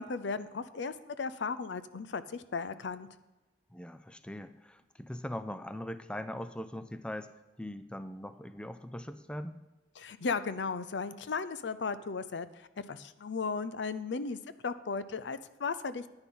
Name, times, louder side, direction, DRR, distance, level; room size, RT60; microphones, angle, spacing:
voice 1, 0.0-3.1 10.0-16.1, left 4 dB, 70° left, 14 dB, 0.5 m, -36 dB
voice 2, 3.7-7.3 7.6-9.6, left 1 dB, 5° left, 11 dB, 0.4 m, -41 dB
10.0 x 9.8 x 3.8 m, 1.1 s
head